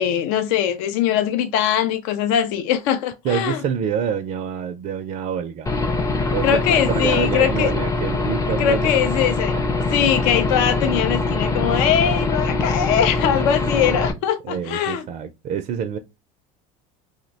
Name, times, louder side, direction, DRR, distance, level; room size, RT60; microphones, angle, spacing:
voice 1, 0.0-3.6 6.4-7.7 8.6-9.5 9.9-15.0, left 9 dB, 80° left, 0.5 m, -21 dB
voice 2, 3.2-5.8 6.3-9.2 9.5-9.6 10.1-10.2 13.2-14.1 14.4-16.0, right 8 dB, 45° right, 0.4 m, -27 dB
Aircraft / Engine, 5.7-14.1, left 3 dB, 15° left, 0.4 m, -23 dB
2.7 x 2.1 x 3.8 m
supercardioid pair, 115°, 20 cm